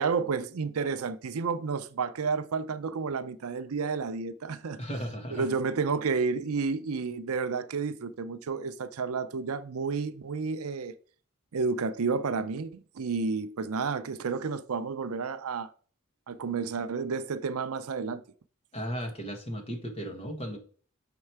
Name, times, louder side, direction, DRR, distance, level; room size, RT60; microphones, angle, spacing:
voice 1, 0.0-4.8 5.3-10.9 11.5-15.7 16.3-18.2, right 5 dB, 75° right, 0.5 m, -31 dB
voice 2, 4.8-5.5 18.7-20.6, equal, 25° left, 1.5 m, -35 dB
6.5 x 4.5 x 4.6 m
head